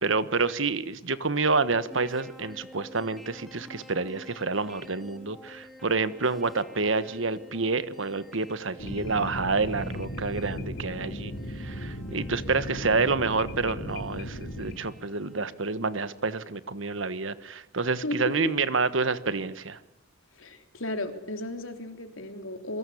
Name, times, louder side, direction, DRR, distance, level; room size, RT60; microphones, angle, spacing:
voice 1, 0.0-19.8, right 4 dB, 70° right, 14 dB, 1.4 m, -28 dB
sound 1, 1.9-15.5, left 1 dB, ahead, 2.5 m, -51 dB
sound 2, 8.8-14.8, equal, 65° left, 2.7 m, -36 dB
voice 2, 18.0-18.5 20.3-22.8, left 1 dB, 85° left, 6 dB, 3.6 m, -34 dB
27.5 x 23.5 x 8.6 m, 0.83 s
head